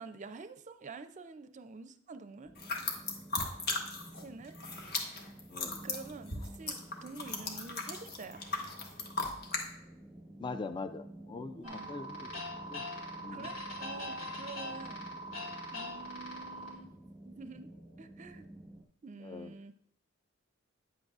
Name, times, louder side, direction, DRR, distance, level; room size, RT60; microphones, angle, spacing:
voice 1, 0.0-2.5 4.2-4.5 5.8-8.4 11.6-11.9 13.3-15.1 15.7-16.9 17.2-17.7 18.0-18.5 19.0-19.7, right 4 dB, 35° right, 10 dB, 0.5 m, -48 dB
sound 1, 2.4-18.8, right 1 dB, ahead, 1.0 m, -52 dB
sound 2, 2.6-4.2 4.5-9.6, left 3 dB, 50° left, 1.1 m, -37 dB
voice 2, 5.5-5.8 10.4-12.4 12.7-12.9 13.2-13.5 19.2-19.5, left 3 dB, 25° left, 10 dB, 0.3 m, -42 dB
sound 3, 11.6-16.7, left 1 dB, 80° left, 2.5 m, -42 dB
9.2 x 7.8 x 2.4 m, 0.71 s
head